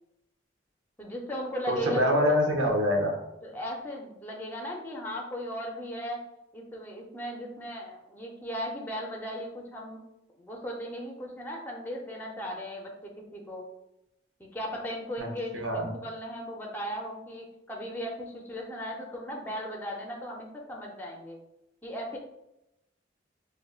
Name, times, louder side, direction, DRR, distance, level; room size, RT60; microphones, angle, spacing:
voice 1, 1.0-2.4 3.4-6.2 6.5-10.0 10.4-13.6 14.4-21.4 21.8-22.2, equal, 10° left, -1 dB, 0.5 m, -37 dB
voice 2, 1.7-3.1 15.2-15.3 15.5-15.9, equal, 80° right, 2 dB, 0.7 m, -25 dB
4.9 x 2.1 x 2.3 m, 0.88 s
head